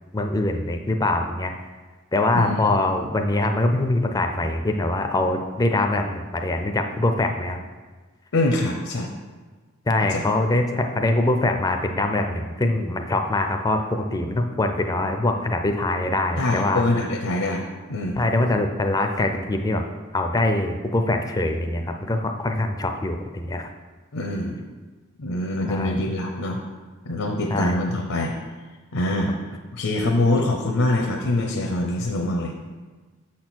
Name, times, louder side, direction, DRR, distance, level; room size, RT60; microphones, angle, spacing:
voice 1, 0.1-1.5 2.1-7.6 9.9-17.1 18.2-19.8 20.1-23.7 25.7-26.0 27.5-27.8, left 2 dB, 15° left, 5 dB, 0.4 m, -23 dB
voice 2, 2.3-2.8 8.3-9.1 10.1-10.2 16.4-18.2 24.1-24.6 25.2-26.6 27.1-28.4 28.9-29.3 29.7-32.5, left 2 dB, 75° left, 1 dB, 0.7 m, -24 dB
6.4 x 4.3 x 6.1 m, 1.4 s
head